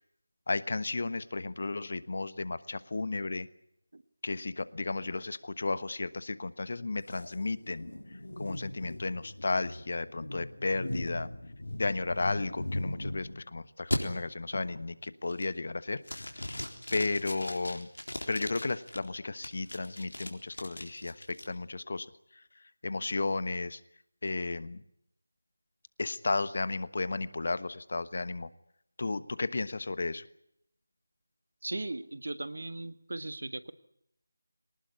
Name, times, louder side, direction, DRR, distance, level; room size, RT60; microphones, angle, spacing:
voice 1, 0.5-3.5 4.2-11.3 11.7-16.2 16.9-17.9 18.3-22.1 22.3-23.8 24.2-24.8 26.0-28.5 29.0-30.2, left 3 dB, 55° left, 15 dB, 1.2 m, -34 dB
sound 1, 7.1-13.4 13.9-14.0 14.5-14.9 15.3-15.7 16.0-19.0 19.4-21.4, left 1 dB, 80° left, 3.8 m, -38 dB
voice 2, 31.6-33.7, right 2 dB, 65° right, 12 dB, 1.6 m, -38 dB
23.5 x 19.0 x 9.7 m, 0.76 s
figure-of-eight pair, 165°, 0 cm